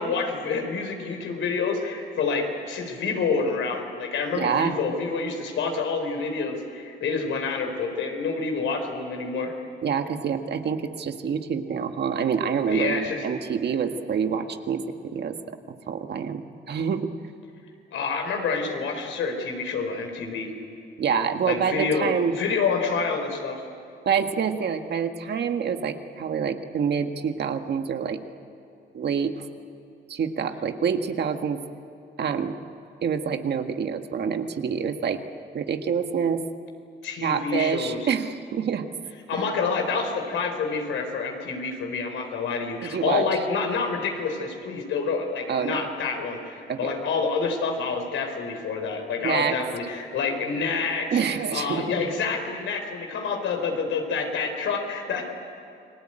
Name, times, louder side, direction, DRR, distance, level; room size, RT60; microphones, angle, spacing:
voice 1, 0.0-9.5 12.7-13.2 17.9-20.5 21.4-23.6 37.0-38.1 39.3-51.2 51.5-55.2, left 4 dB, 75° left, 4 dB, 4.5 m, -28 dB
voice 2, 4.3-4.8 9.8-15.4 15.9-17.1 21.0-22.3 24.1-28.2 28.9-29.4 30.1-31.6 32.2-32.6 33.0-35.2 35.5-36.4 37.2-38.9 39.3-39.4 42.8-43.2 45.5-45.9 46.7-46.8 49.2-49.6 51.1-51.9, right 7 dB, 55° right, 6 dB, 1.8 m, -26 dB
29.5 x 20.0 x 9.0 m, 2.6 s
cardioid pair, 90°, 20 cm